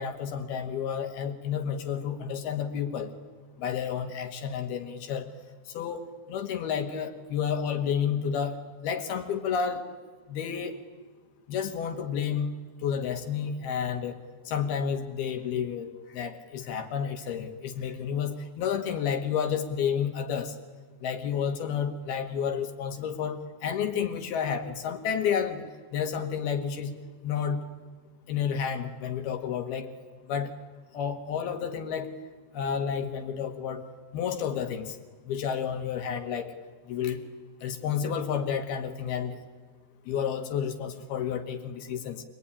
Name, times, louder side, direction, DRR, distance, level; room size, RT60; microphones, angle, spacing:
voice 1, 0.0-3.1 3.6-5.3 5.7-6.0 6.3-8.6 8.8-9.9 10.3-10.8 11.5-12.5 12.8-14.2 14.5-20.5 21.0-25.6 25.9-26.9 27.2-27.6 28.3-29.9 30.3-30.5 30.9-32.1 32.5-33.8 34.1-35.0 35.3-36.5 36.9-37.2 37.6-39.4 40.1-42.2, left 7 dB, 70° left, 5 dB, 3.6 m, -30 dB
27.0 x 20.0 x 10.0 m, 1.4 s
omnidirectional pair, 4.8 m